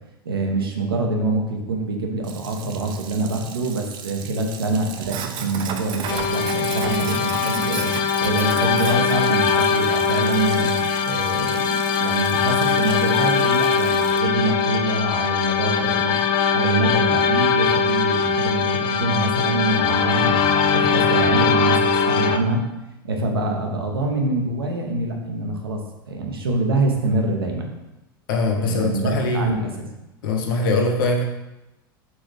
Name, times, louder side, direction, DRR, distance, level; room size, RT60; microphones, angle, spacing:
voice 1, 0.2-7.9 8.2-10.7 11.0-11.7 12.0-16.2 16.4-21.8 22.1-22.6 23.0-25.8 26.1-27.7 28.6-29.7, right 2 dB, 85° right, 1 dB, 0.7 m, -25 dB
Sink (filling or washing), 2.2-14.2, right 7 dB, 40° right, 0.5 m, -35 dB
sound 1, 6.1-22.4, left 6 dB, 40° left, 0.4 m, -21 dB
voice 2, 28.3-29.5 30.2-31.2, left 2 dB, 65° left, 1 dB, 0.8 m, -22 dB
4.2 x 3.4 x 3.2 m, 0.97 s
hypercardioid pair, 90°, 12 cm